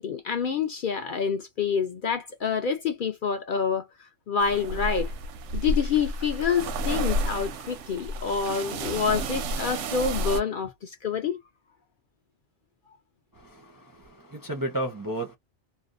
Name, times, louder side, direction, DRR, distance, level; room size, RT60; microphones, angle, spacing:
voice 1, 0.0-3.8 4.3-5.1 5.5-11.4, left 6 dB, 55° left, 0.6 m, -27 dB
sound 1, 4.4-10.4, right 1 dB, 85° right, 0.9 m, -31 dB
voice 2, 13.3-15.4, right 1 dB, 25° right, 0.4 m, -33 dB
2.7 x 2.1 x 2.4 m
omnidirectional pair, 1.2 m